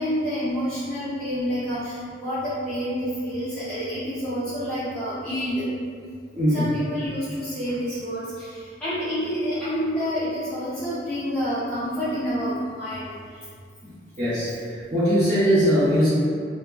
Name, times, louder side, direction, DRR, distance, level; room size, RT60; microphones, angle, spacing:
voice 1, 0.0-5.7 6.5-13.1, equal, 5° left, -15 dB, 0.5 m, -28 dB
voice 2, 6.3-6.7 14.2-16.1, equal, 40° right, -15 dB, 1.1 m, -21 dB
2.7 x 2.1 x 2.4 m, 2.1 s
head